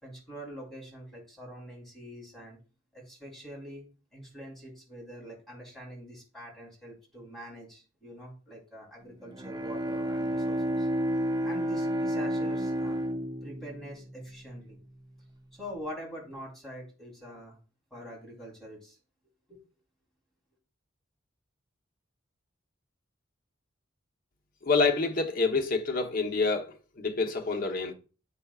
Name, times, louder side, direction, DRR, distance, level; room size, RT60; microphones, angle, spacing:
voice 1, 0.0-2.6 2.9-3.8 4.1-10.9 11.4-13.0 13.4-14.8 15.5-17.6 17.9-19.0 19.5-19.6, equal, ahead, 3.4 m, -44 dB
Bowed string instrument, 9.2-14.8, equal, 20° right, 0.6 m, -31 dB
voice 2, 24.6-27.9, left 4 dB, 45° left, 1.0 m, -27 dB
8.6 x 5.6 x 2.4 m
head